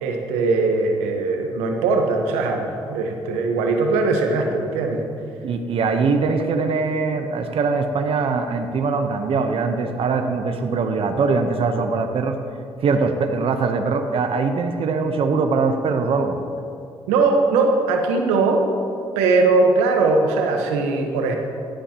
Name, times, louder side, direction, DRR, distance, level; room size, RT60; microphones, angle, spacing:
voice 1, 0.0-5.0 17.1-18.6 19.2-21.4, right 3 dB, 85° right, 3 dB, 1.1 m, -20 dB
voice 2, 5.4-12.4 12.8-16.4, right 4 dB, 55° right, 5 dB, 0.9 m, -22 dB
17.0 x 10.0 x 2.9 m, 2.6 s
supercardioid pair, 55°, 11 cm